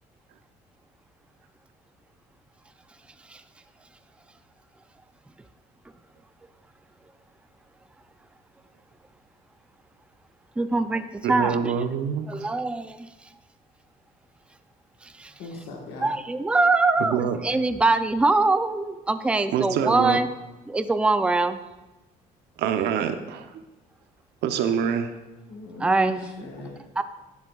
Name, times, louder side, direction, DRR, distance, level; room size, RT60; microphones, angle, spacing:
voice 1, 10.6-11.7 12.3-13.1 15.0-15.3 16.0-20.3 20.7-21.6 25.8-26.2 27.0-27.1, right 3 dB, 5° right, 9 dB, 0.4 m, -23 dB
voice 2, 11.2-12.3 17.0-17.4 19.5-20.2 22.6-23.6 24.4-25.2, right 8 dB, 75° right, 8 dB, 0.8 m, -25 dB
voice 3, 15.4-16.1 25.5-26.8, left 3 dB, 75° left, -1 dB, 1.4 m, -39 dB
11.5 x 7.3 x 2.4 m, 1.1 s
cardioid pair, 110°, 17 cm